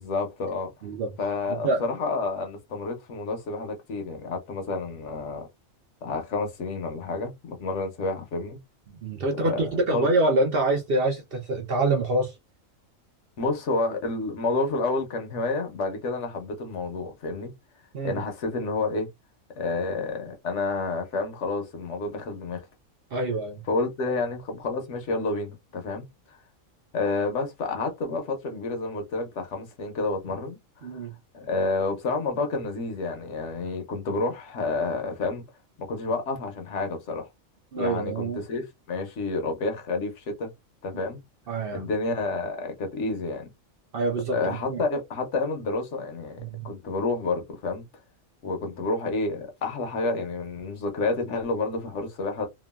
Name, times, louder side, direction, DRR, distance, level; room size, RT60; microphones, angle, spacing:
voice 1, 0.0-0.7 1.2-5.5 6.0-8.6 9.3-10.1 13.4-17.5 18.0-19.1 19.6-22.6 23.7-26.4 26.9-31.0 31.3-35.4 35.9-37.3 37.8-40.5 40.8-41.2 41.7-43.5 44.3-46.4 46.6-47.8 48.4-52.5, left 3 dB, 65° left, 1.0 m, -29 dB
voice 2, 1.5-1.8 8.9-12.3 17.9-18.2 23.1-23.6 30.8-31.1 37.7-38.4 41.5-41.8 43.9-44.8 46.4-46.7, right 2 dB, 55° right, 0.7 m, -26 dB
2.9 x 2.3 x 2.2 m
omnidirectional pair, 1.4 m